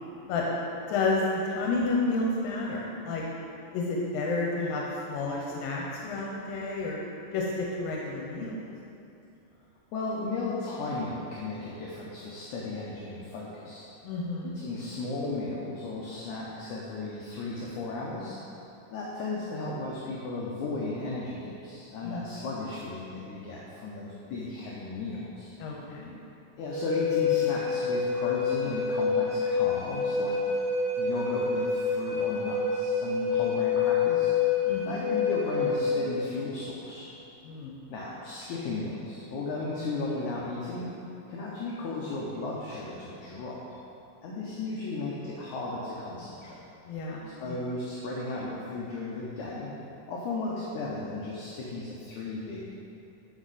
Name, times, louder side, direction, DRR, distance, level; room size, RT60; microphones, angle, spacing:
voice 1, 0.9-3.2 3.7-7.0 7.3-8.5 14.0-14.6 22.0-22.2 25.6-26.1 34.7-35.0 37.4-37.7 46.9-47.6, left 3 dB, 85° left, -2 dB, 2.6 m, -30 dB
voice 2, 9.9-13.9 14.6-18.4 18.9-25.5 26.6-30.4 31.0-34.3 34.8-37.1 37.9-40.9 41.3-43.6 44.2-46.6 47.4-49.7 50.1-52.6, left 3 dB, 70° left, -5 dB, 2.1 m, -35 dB
Wind instrument woodwind instrument, 26.7-36.0, left 5 dB, 50° left, 1.5 m, -27 dB
12.5 x 5.4 x 4.1 m, 2.8 s
omnidirectional pair, 4.1 m